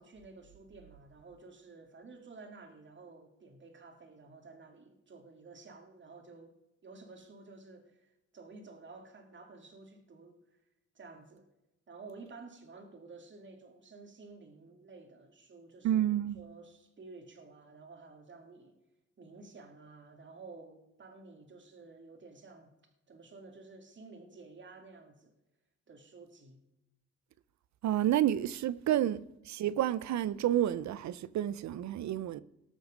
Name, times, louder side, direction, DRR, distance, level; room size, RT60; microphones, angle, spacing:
voice 1, 0.0-6.5 6.8-10.4 10.9-11.5 11.9-18.8 19.2-22.7 23.1-25.3 25.9-26.6, right 3 dB, 40° right, 2.4 m, -52 dB
voice 2, 15.8-16.4 27.8-29.2 29.5-32.4, right 12 dB, 65° right, 0.6 m, -30 dB
19.0 x 6.3 x 5.2 m
cardioid pair, 90°, 30 cm